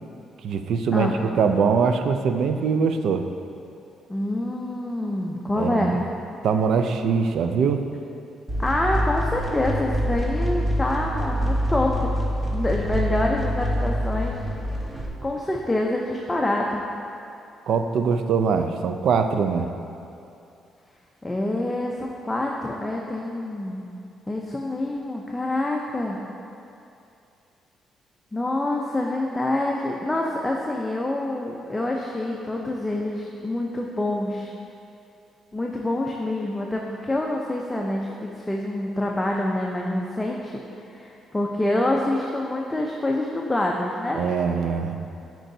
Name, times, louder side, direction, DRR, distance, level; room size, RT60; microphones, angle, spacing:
voice 1, 0.4-3.3 5.5-6.0 6.4-7.8 17.7-19.7 44.1-45.0, right 5 dB, 70° right, 7 dB, 0.3 m, -22 dB
voice 2, 4.1-6.0 8.6-12.1 12.5-14.4 15.2-16.8 21.2-23.8 24.3-26.2 28.3-34.5 35.5-40.5 40.9-44.2, left 1 dB, 15° left, -1 dB, 0.5 m, -26 dB
sound 1, 8.5-15.1, equal, 25° right, 1.0 m, -26 dB
8.7 x 4.6 x 2.6 m, 2.7 s
cardioid pair, 90°, 0 cm